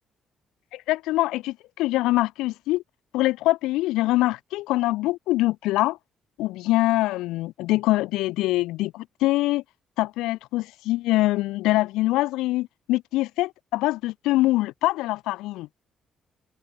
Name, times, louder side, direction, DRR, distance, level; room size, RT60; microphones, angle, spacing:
voice 1, 0.7-2.8 3.1-6.0 6.4-9.6 10.0-15.7, left 18 dB, 80° left, 0.3 m, -24 dB
hypercardioid pair, 45°, 0 cm